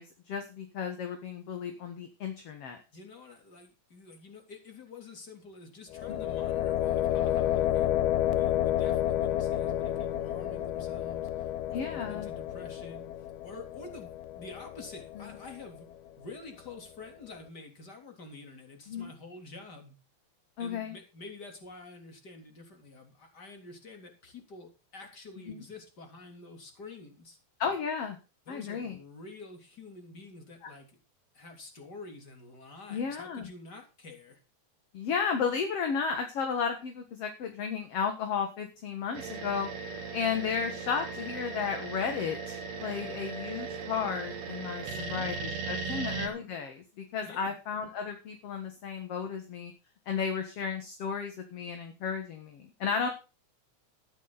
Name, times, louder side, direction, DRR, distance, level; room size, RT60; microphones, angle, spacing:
voice 1, 0.0-2.8 6.1-6.2 11.7-12.3 15.2-15.3 18.9-19.1 20.6-21.0 25.5-25.6 27.6-28.2 28.5-29.0 32.9-33.5 34.9-39.7 40.1-49.7 50.1-53.1, left 6 dB, 55° left, 5 dB, 2.5 m, -33 dB
voice 2, 2.9-7.9 8.2-11.5 11.9-13.1 13.4-15.9 16.1-20.0 20.6-27.4 28.5-30.9 31.3-34.4 44.9-45.3 45.8-46.0 47.2-47.5, left 3 dB, 35° left, 3 dB, 3.8 m, -48 dB
sound 1, 5.9-15.8, left 12 dB, 80° left, 2.2 m, -30 dB
sound 2, 39.1-46.3, right 4 dB, 65° right, 2.7 m, -38 dB
13.0 x 11.0 x 4.1 m, 0.31 s
omnidirectional pair, 3.4 m